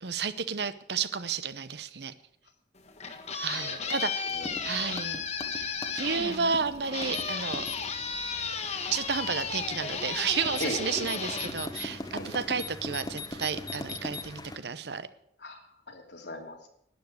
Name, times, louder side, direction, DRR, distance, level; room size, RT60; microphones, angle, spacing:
voice 1, 0.0-2.1 3.4-4.2 4.6-5.2 5.5-7.7 8.9-15.1, right 6 dB, 70° right, 14 dB, 0.8 m, -32 dB
sound 1, 2.8-12.4, left 5 dB, 40° left, 1.5 m, -34 dB
voice 2, 3.5-3.9 4.3-4.5 10.6-10.8 12.1-12.3 15.4-16.7, left 2 dB, 80° left, 3 dB, 2.7 m, -39 dB
sound 2, 4.3-14.6, left 2 dB, 25° left, 1.1 m, -41 dB
12.0 x 9.7 x 7.8 m, 0.72 s
head